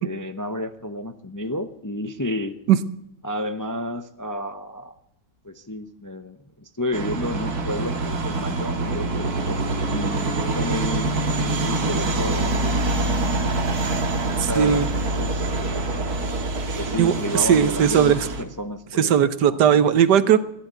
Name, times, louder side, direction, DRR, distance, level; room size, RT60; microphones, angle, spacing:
voice 1, 0.0-2.6 3.2-4.9 5.4-11.1 11.4-13.4 14.3-14.9 15.1-16.0 16.8-19.1 19.5-19.8, left 1 dB, 25° left, 8 dB, 0.4 m, -31 dB
sound 1, 6.9-18.4, right 2 dB, 65° right, 2.2 m, -25 dB
voice 2, 14.4-14.9 17.0-18.2 19.0-20.4, right 9 dB, 90° right, 13 dB, 1.6 m, -18 dB
16.0 x 11.0 x 8.1 m, 0.79 s
omnidirectional pair, 1.7 m